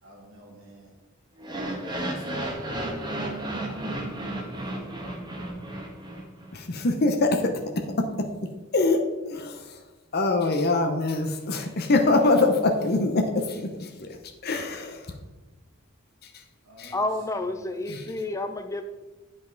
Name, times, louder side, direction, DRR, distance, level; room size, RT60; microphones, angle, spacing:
voice 1, 0.0-0.9 1.8-4.1 4.4-5.0 16.6-17.8, right 1 dB, 75° right, -2 dB, 2.3 m, -52 dB
sound 1, 1.4-6.5, right 1 dB, 20° right, 1.2 m, -33 dB
voice 2, 6.5-7.4 8.7-9.6 10.1-14.2 14.4-15.1 16.8-16.9 17.9-18.0, left 2 dB, 50° left, 4 dB, 0.8 m, -24 dB
voice 3, 16.9-18.8, left 2 dB, 15° left, 7 dB, 0.4 m, -30 dB
9.5 x 5.3 x 3.9 m, 1.1 s
head